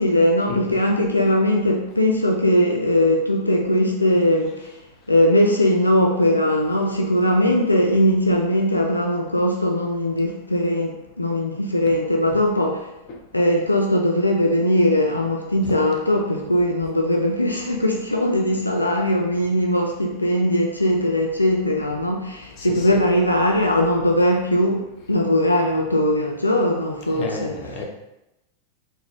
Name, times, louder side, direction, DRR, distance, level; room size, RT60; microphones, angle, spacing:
voice 1, 0.0-4.7 5.1-12.9 13.3-27.6, left 1 dB, 85° left, 1 dB, 0.3 m, -20 dB
voice 2, 22.6-22.9 27.1-27.8, left 2 dB, 40° left, 0 dB, 0.7 m, -32 dB
4.0 x 2.1 x 3.3 m, 0.92 s
figure-of-eight pair, 90°, 0 cm